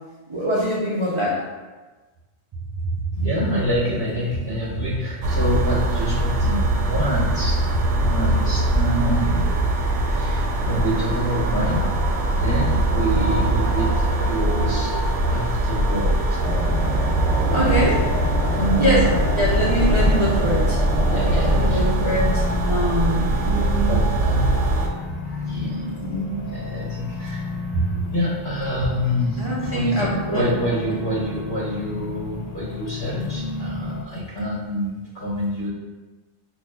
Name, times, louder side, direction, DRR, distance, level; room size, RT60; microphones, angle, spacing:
voice 1, 0.3-1.4 17.5-17.9 18.8-19.0 19.4-20.8 21.4-24.0 25.5-26.5 29.4-30.5 30.9-31.0, right 1 dB, 40° right, -6 dB, 0.4 m, -24 dB
voice 2, 3.1-7.6 7.9-9.7 10.0-11.9 12.3-14.9 15.3-16.7 17.4-17.8 18.4-19.2 19.7-20.1 21.0-22.5 23.8-25.9 26.3-35.7, equal, 45° left, -8 dB, 1.1 m, -27 dB
sound 1, 5.2-24.9, right 1 dB, 80° right, 0.9 m, -21 dB
sound 2, 16.4-21.6, left 1 dB, ahead, 0.9 m, -28 dB
sound 3, 18.7-34.0, left 3 dB, 80° left, 0.3 m, -33 dB
5.6 x 2.3 x 2.2 m, 1.3 s
omnidirectional pair, 1.2 m